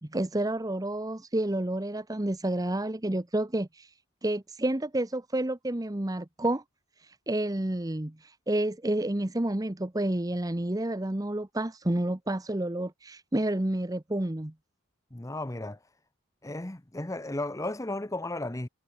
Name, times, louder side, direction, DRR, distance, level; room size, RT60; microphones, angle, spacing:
voice 1, 0.0-3.9 4.2-6.6 7.0-14.5, right 1 dB, 15° right, 0.8 m, -30 dB
voice 2, 15.1-15.8 16.4-18.7, left 2 dB, 15° left, 0.8 m, -34 dB
head